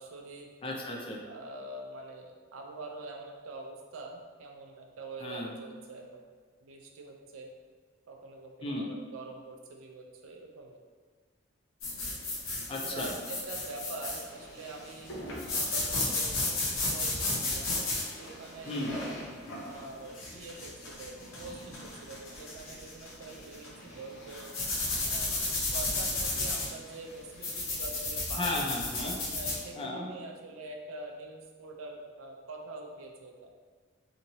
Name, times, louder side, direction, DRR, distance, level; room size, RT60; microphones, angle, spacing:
voice 1, 0.0-0.5 1.2-6.3 6.6-7.5 8.1-10.8 12.7-15.1 15.5-17.7 18.2-19.2 19.6-24.5 25.0-25.4 25.6-28.6 29.3-33.5, right 3 dB, 90° right, 1 dB, 0.5 m, -45 dB
voice 2, 0.6-1.2 5.2-5.5 8.6-8.9 12.7-13.1 18.7-18.9 28.4-29.2 29.8-30.1, left 2 dB, 25° left, -1 dB, 0.4 m, -34 dB
sound 1, 11.8-29.6, left 2 dB, 90° left, 0.7 m, -34 dB
2.9 x 2.7 x 2.7 m, 1.5 s
head